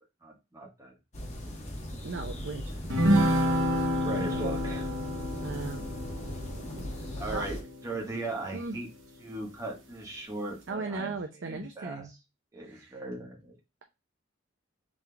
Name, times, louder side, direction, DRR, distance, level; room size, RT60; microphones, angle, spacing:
voice 1, 0.2-0.9 4.0-4.9 7.2-8.9 9.2-12.1 12.5-13.5, right 2 dB, 15° right, -2 dB, 1.3 m, -38 dB
sound 1, 1.1-7.6, equal, 35° left, 1.1 m, -39 dB
voice 2, 2.0-2.7 4.3-4.4 5.4-5.8 6.8-6.9 7.3-7.4 8.5-8.8 10.7-12.1 12.6-13.0, right 3 dB, 75° right, 4 dB, 0.6 m, -37 dB
sound 2, 2.9-8.6, equal, 90° right, 1.1 m, -29 dB
3.9 x 3.3 x 3.3 m, 0.25 s
head